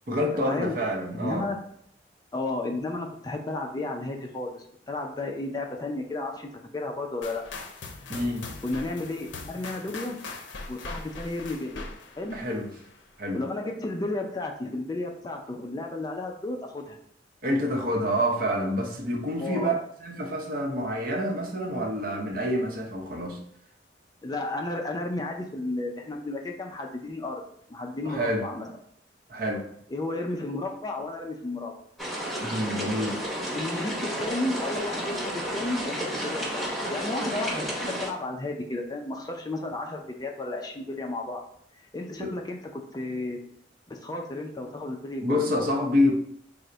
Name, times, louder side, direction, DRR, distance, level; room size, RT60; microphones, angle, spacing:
voice 1, 0.1-1.5 8.1-8.5 12.3-12.7 13.2-13.4 17.4-23.4 28.0-28.5 29.3-29.7 32.4-33.3 42.2-42.3 45.2-46.1, equal, 50° right, 1 dB, 0.7 m, -27 dB
voice 2, 1.1-1.6 2.3-7.4 8.6-10.2 10.7-11.8 12.2-12.4 13.3-17.0 19.4-19.7 24.2-27.4 27.7-28.7 29.9-31.7 33.5-41.4 41.9-43.4 43.9-45.5, left 2 dB, 20° left, 2 dB, 0.3 m, -33 dB
sound 1, 7.2-13.1, left 3 dB, 80° left, 0.5 m, -41 dB
sound 2, 32.0-38.1, equal, ahead, 0.9 m, -32 dB
3.8 x 2.0 x 4.4 m, 0.68 s
head